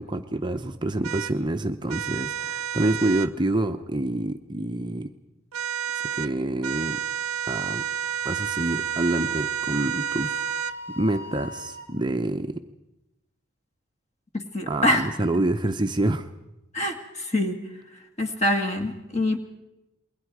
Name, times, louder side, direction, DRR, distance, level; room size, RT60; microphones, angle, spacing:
voice 1, 0.0-5.1 5.9-7.0 7.5-7.8 8.2-10.4 10.9-12.6 14.7-16.3, right 1 dB, 20° right, 6 dB, 0.7 m, -27 dB
sound 1, 1.0-1.3 1.9-3.3 5.5-6.3 6.6-10.8, right 9 dB, 85° right, 0.7 m, -30 dB
Wind instrument woodwind instrument, 7.5-11.9, equal, 85° left, 5.1 m, -40 dB
voice 2, 14.3-15.1 16.7-17.6 18.2-19.4, left 1 dB, 30° left, 5 dB, 2.1 m, -25 dB
28.5 x 22.0 x 4.8 m, 0.95 s
head